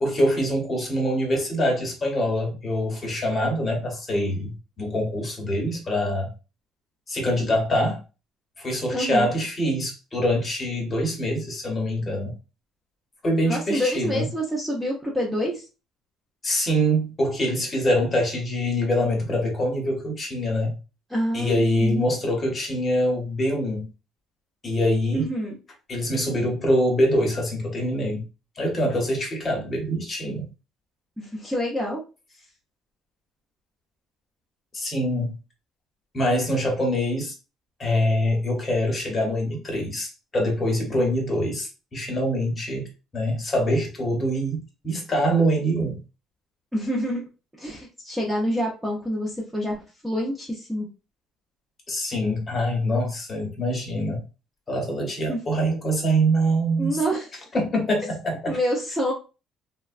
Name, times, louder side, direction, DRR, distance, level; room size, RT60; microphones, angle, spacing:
voice 1, 0.0-6.3 7.1-8.0 8.6-12.3 13.2-14.3 16.4-20.8 21.3-23.9 24.6-25.2 25.9-28.2 28.6-30.5 34.7-35.3 36.1-37.3 37.8-44.6 44.8-46.0 51.9-54.2 54.7-57.0 57.5-58.6, equal, 20° left, 0.8 m, -24 dB
voice 2, 8.9-9.3 13.4-15.6 21.1-22.1 25.1-25.6 31.2-32.0 46.7-47.3 47.6-50.9 55.3-55.4 56.8-57.3 58.5-59.1, equal, 5° right, 0.4 m, -27 dB
3.3 x 2.1 x 2.4 m
cardioid pair, 175°, 0 cm